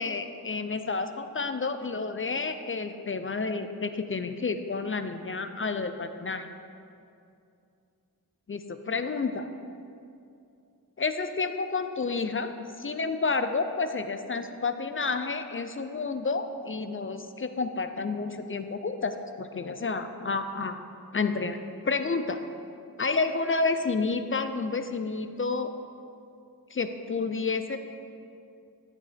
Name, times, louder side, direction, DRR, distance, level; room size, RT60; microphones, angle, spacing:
voice 1, 0.0-6.5 8.5-9.5 11.0-12.5 12.8-20.8 21.1-21.6 21.8-22.4 23.0-25.7 26.7-27.8, left 4 dB, 35° left, 9 dB, 0.4 m, -30 dB
11.5 x 8.2 x 3.4 m, 2.5 s
wide cardioid pair, 100°, 37 cm